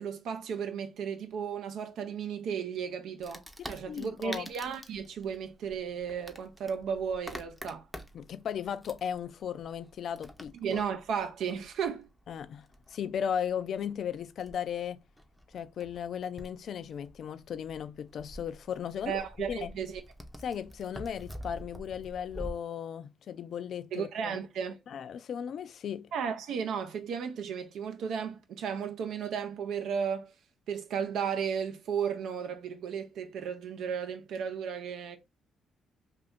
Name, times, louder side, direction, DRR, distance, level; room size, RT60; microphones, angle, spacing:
voice 1, 0.0-7.9 10.6-12.1 19.1-20.0 23.9-24.8 26.1-30.3 30.7-35.2, right 7 dB, 75° right, 0.4 m, -34 dB
Wood, 3.2-22.5, equal, ahead, 0.5 m, -48 dB
voice 2, 3.6-4.5 8.1-10.8 12.3-15.0 15.5-19.7 20.4-24.4 24.9-26.1, left 8 dB, 60° left, 0.3 m, -36 dB
2.6 x 2.5 x 3.4 m
cardioid pair, 90°, 0 cm